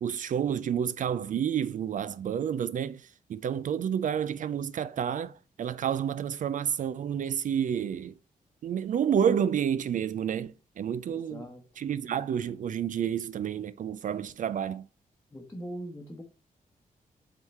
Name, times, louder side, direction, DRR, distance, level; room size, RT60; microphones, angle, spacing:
voice 1, 0.0-8.1 8.6-11.5 11.8-14.8, right 8 dB, 65° right, 0.4 m, -30 dB
voice 2, 11.3-11.6 15.3-16.2, equal, 15° left, 1.0 m, -40 dB
8.0 x 3.6 x 4.2 m
wide cardioid pair, 150°, 14 cm